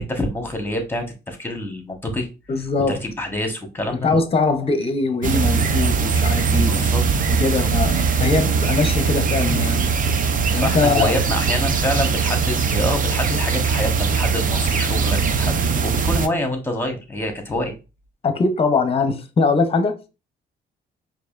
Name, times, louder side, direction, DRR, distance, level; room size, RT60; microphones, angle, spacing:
voice 1, 0.0-2.3 2.9-4.1 6.7-7.0 7.4-7.7 10.5-17.7, left 1 dB, 10° left, 1.1 m, -26 dB
voice 2, 2.5-3.0 3.9-6.7 7.3-9.8 10.5-11.1 18.2-20.0, left 4 dB, 30° left, 0.7 m, -21 dB
sound 1, 5.2-16.3, right 5 dB, 45° right, 0.5 m, -20 dB
4.7 x 2.8 x 2.4 m
cardioid pair, 90°, 20 cm